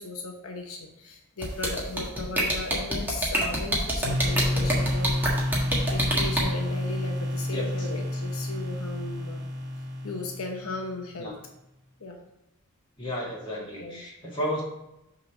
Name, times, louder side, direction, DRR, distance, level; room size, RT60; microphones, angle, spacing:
voice 1, 0.0-5.2 5.5-5.7 5.9-9.4 10.0-11.3 12.0-12.2 13.8-14.0, left 3 dB, 75° left, 2 dB, 0.8 m, -36 dB
sound 1, 1.4-6.4, right 1 dB, 10° right, 1.5 m, -25 dB
sound 2, 4.0-10.9, left 1 dB, 50° right, 1.4 m, -30 dB
voice 2, 7.5-7.9 11.2-11.3 13.0-14.6, equal, 20° left, -6 dB, 2.1 m, -33 dB
6.0 x 3.9 x 5.9 m, 0.89 s
head